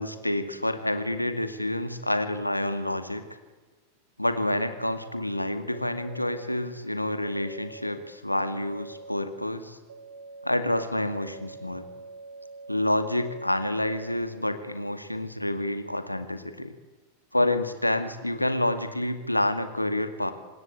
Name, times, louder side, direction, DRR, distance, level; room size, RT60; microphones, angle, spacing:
voice 1, 0.0-3.2 4.2-9.8 10.4-11.9 12.7-16.7 17.3-20.3, left 1 dB, 85° left, 9 dB, 2.2 m, -28 dB
sound 1, 4.4-5.1 5.7-6.5 7.2-7.9 8.5-9.2 9.9-14.2, right 3 dB, 65° right, 7.0 m, -45 dB
26.0 x 20.0 x 8.8 m, 1.3 s
figure-of-eight pair, 90°, 0 cm